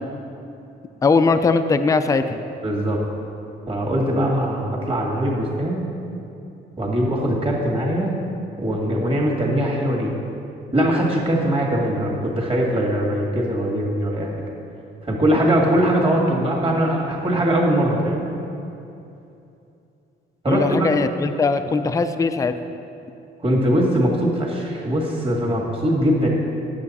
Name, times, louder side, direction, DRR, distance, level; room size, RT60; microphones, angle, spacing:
voice 1, 1.0-2.4 20.5-22.6, left 4 dB, 15° left, 9 dB, 0.4 m, -20 dB
voice 2, 2.6-3.0 3.7-5.8 6.8-8.1 8.6-10.2 10.7-14.3 15.0-18.3 20.4-20.9 23.4-26.3, right 1 dB, 30° right, -3 dB, 1.8 m, -21 dB
8.6 x 6.8 x 4.1 m, 2.7 s
cardioid pair, 90°, 20 cm